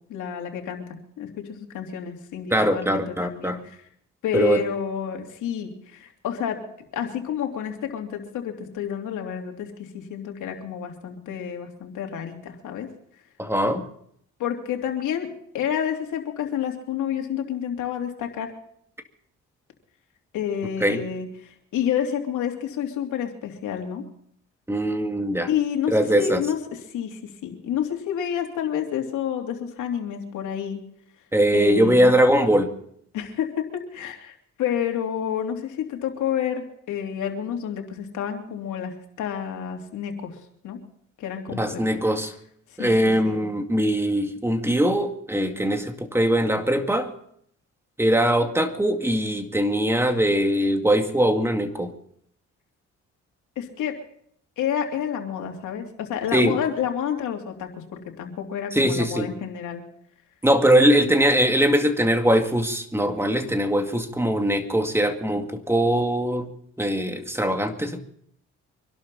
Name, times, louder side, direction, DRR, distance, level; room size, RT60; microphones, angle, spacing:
voice 1, 0.1-0.9 1.2-3.8 4.2-6.6 6.9-12.9 13.6-13.8 14.4-15.3 15.5-18.5 20.3-24.0 25.5-30.8 31.5-32.1 33.1-38.9 39.2-40.4 40.6-40.8 41.2-41.8 42.7-42.9 43.2-43.4 53.6-53.9 54.6-59.8, left 9 dB, 80° left, 2 dB, 3.1 m, -29 dB
voice 2, 2.5-3.6 4.3-4.6 13.4-13.9 20.8-21.0 24.7-25.5 25.9-26.4 31.3-32.7 41.5-42.3 42.8-47.1 48.0-51.9 56.3-56.6 58.7-59.3 60.4-66.5 66.8-68.0, right 1 dB, 10° right, 5 dB, 2.3 m, -21 dB
25.0 x 12.0 x 4.2 m, 0.67 s
cardioid pair, 90°, 30 cm